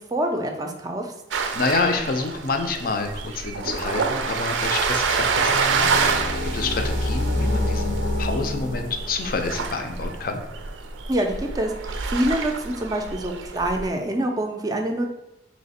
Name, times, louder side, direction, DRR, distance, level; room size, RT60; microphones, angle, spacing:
voice 1, 0.1-1.1 11.1-15.1, right 1 dB, 20° right, 2 dB, 0.4 m, -26 dB
sound 1, 1.3-13.9, right 5 dB, 90° right, 0.4 m, -27 dB
voice 2, 1.5-10.4, left 3 dB, 50° left, 5 dB, 0.5 m, -28 dB
sound 2, 4.8-9.4, left 1 dB, 85° left, 0.7 m, -27 dB
3.2 x 2.8 x 4.1 m, 0.91 s
head